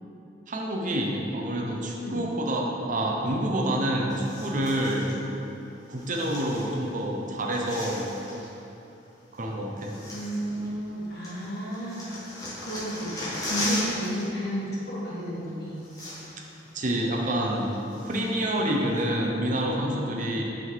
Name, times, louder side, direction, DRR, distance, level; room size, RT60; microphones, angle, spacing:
voice 1, 0.5-5.1 5.9-8.1 9.3-9.9 16.7-17.7 18.0-20.4, right 1 dB, 45° right, 0 dB, 0.7 m, -27 dB
sound 1, 4.1-5.2 5.9-7.0 7.3-8.5 9.3-9.4 9.8-11.0 11.2-14.3 14.5-14.7 15.5-15.6 15.8-16.5 16.9-17.0 17.5-18.4 19.0-19.1, left 1 dB, 20° left, 1.4 m, -37 dB
voice 2, 10.1-12.1 12.6-15.8, equal, 65° left, -6 dB, 1.4 m, -32 dB
5.7 x 3.7 x 4.7 m, 2.8 s
head